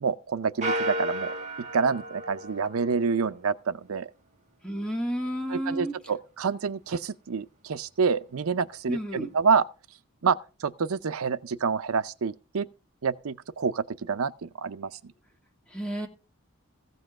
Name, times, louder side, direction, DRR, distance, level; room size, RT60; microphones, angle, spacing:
voice 1, 0.0-1.3 1.7-4.1 5.5-9.6 10.2-12.7 13.0-14.9, right 5 dB, 80° right, 0.6 m, -27 dB
sound 1, 0.6-3.3, right 1 dB, 35° right, 1.9 m, -33 dB
voice 2, 4.6-5.9 8.9-9.3 15.7-16.1, equal, 5° left, 2.3 m, -31 dB
15.5 x 5.6 x 6.4 m
head